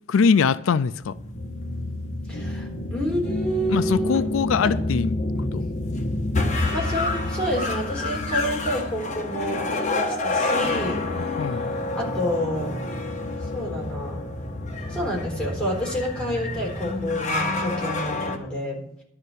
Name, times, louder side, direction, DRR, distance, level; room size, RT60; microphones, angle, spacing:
voice 1, 0.1-1.1 3.7-5.7 11.4-11.7, left 5 dB, 85° left, 15 dB, 0.4 m, -22 dB
sound 1, 1.0-18.4, left 2 dB, 40° left, 1.3 m, -28 dB
voice 2, 2.3-4.2 4.6-4.7 6.5-11.0 11.4-11.7 12.0-12.8 13.5-14.3 14.9-19.0, equal, 5° left, -4 dB, 3.9 m, -29 dB
11.5 x 5.5 x 8.2 m, 0.70 s
head